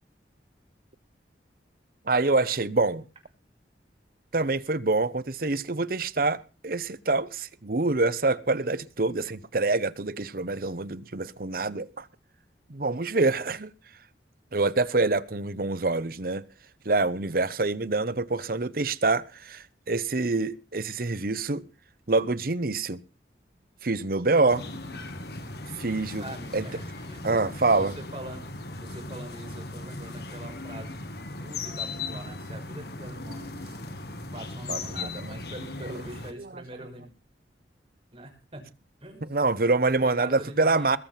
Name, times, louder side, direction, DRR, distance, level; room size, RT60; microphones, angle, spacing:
voice 1, 2.1-3.0 4.3-12.1 12.7-13.7 14.5-16.4 16.8-21.6 22.1-23.0 23.8-24.6 25.7-26.2 26.5-26.7 27.2-27.9 34.7-35.3 36.4-36.5 39.2-41.0, right 3 dB, 50° right, 0.9 m, -26 dB
sound 1, 24.5-36.3, left 3 dB, 60° left, 2.1 m, -38 dB
voice 2, 26.2-28.4 28.8-31.1 31.4-33.8 34.3-37.1 38.1-38.7 39.0-39.3 39.6-41.0, right 1 dB, 30° right, 6.1 m, -43 dB
21.5 x 7.5 x 5.8 m
head